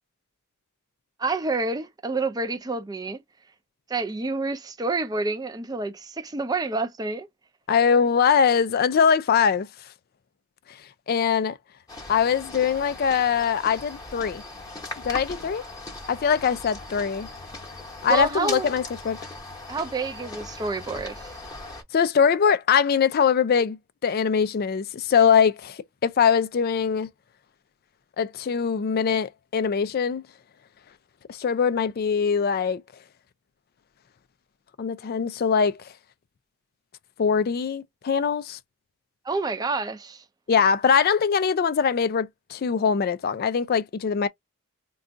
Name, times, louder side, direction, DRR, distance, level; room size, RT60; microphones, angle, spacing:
voice 1, 1.2-3.2 3.9-7.3 18.1-18.7 19.7-21.4 39.2-40.2, right 3 dB, 15° right, 0.4 m, -28 dB
voice 2, 7.7-9.7 10.7-10.8 11.1-11.6 12.1-14.4 15.0-15.6 16.1-17.3 18.0-19.2 21.9-27.1 28.2-30.2 31.3-32.8 34.8-35.8 37.2-38.6 40.5-44.3, left 6 dB, 45° left, 0.3 m, -22 dB
sound 1, 11.9-21.8, left 2 dB, 15° left, 0.9 m, -39 dB
2.5 x 2.3 x 3.7 m
head